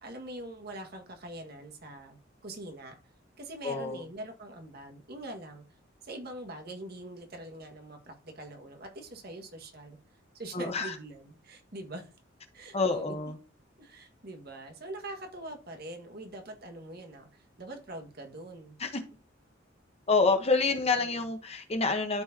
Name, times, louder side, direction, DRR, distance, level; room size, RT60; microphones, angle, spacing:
voice 1, 0.0-2.9 3.4-5.6 6.0-10.0 10.3-12.1 12.5-13.2 13.8-18.8 20.8-21.3, right 1 dB, 55° right, 3 dB, 1.7 m, -43 dB
voice 2, 3.6-4.0 10.5-11.0 12.7-13.4 18.8-18.9 20.1-22.2, left 4 dB, 30° left, 6 dB, 1.0 m, -27 dB
12.5 x 4.7 x 2.8 m, 0.34 s
head